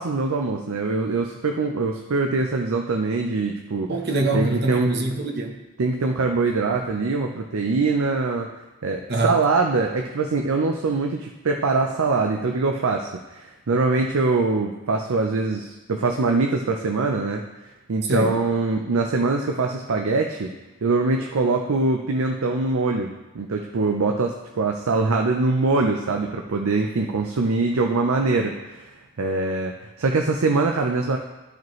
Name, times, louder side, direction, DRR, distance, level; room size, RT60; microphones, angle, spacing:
voice 1, 0.0-3.9 4.3-4.9 5.8-8.5 8.8-17.4 17.9-20.5 20.8-28.9 29.2-31.2, right 3 dB, 75° right, 3 dB, 0.5 m, -23 dB
voice 2, 3.9-5.6 9.1-9.4 18.1-18.4, right 2 dB, 50° right, 3 dB, 0.9 m, -24 dB
12.5 x 5.0 x 3.1 m, 1.1 s
head